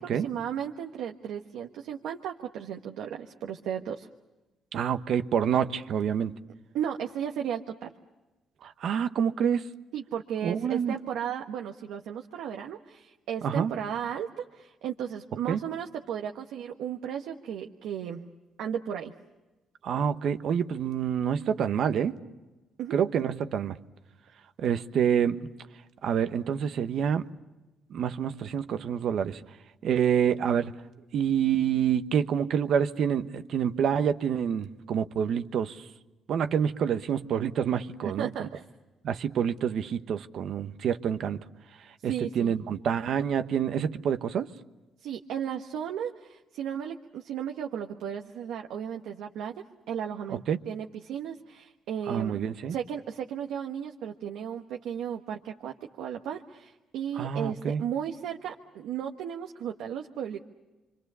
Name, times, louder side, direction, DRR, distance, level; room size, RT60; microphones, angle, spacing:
voice 1, 0.0-4.1 6.7-7.9 9.9-18.3 18.6-19.1 22.8-23.0 38.0-38.6 42.1-42.5 45.0-52.4 52.7-60.4, right 9 dB, 85° right, 1.3 m, -35 dB
voice 2, 4.7-6.3 8.6-9.7 10.4-10.9 13.4-13.7 15.5-15.6 19.8-22.2 22.9-23.8 24.6-25.4 26.0-27.3 27.9-29.4 29.8-30.7 31.1-35.8 36.3-38.5 39.0-41.4 42.0-44.5 50.5-50.6 52.1-52.8 57.2-57.8, right 8 dB, 70° right, 1.1 m, -27 dB
28.0 x 25.0 x 6.9 m
cardioid pair, 90°, 0 cm